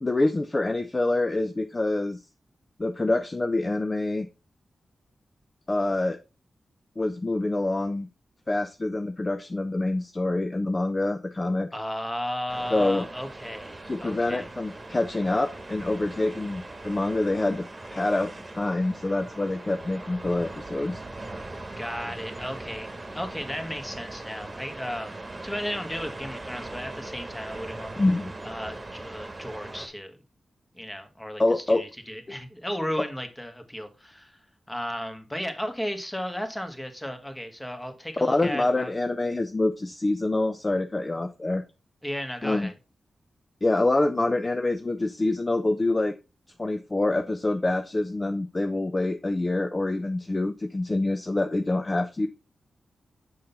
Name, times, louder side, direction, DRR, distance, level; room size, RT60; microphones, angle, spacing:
voice 1, 0.0-2.2 2.8-4.3 5.7-6.2 7.0-8.1 8.5-11.7 12.7-13.1 13.9-17.6 17.9-21.0 28.0-28.3 31.4-31.8 32.3-32.4 38.3-41.6 42.4-42.7 43.6-46.1 46.6-52.3, left 2 dB, 30° left, 0.6 m, -26 dB
voice 2, 11.7-14.5 21.8-25.2 25.4-27.9 28.4-30.2 30.7-38.9 42.0-42.7, equal, 10° left, 1.5 m, -34 dB
sound 1, 12.5-29.9, right 2 dB, 30° right, 1.4 m, -40 dB
6.4 x 5.6 x 3.9 m
cardioid pair, 70°, 0 cm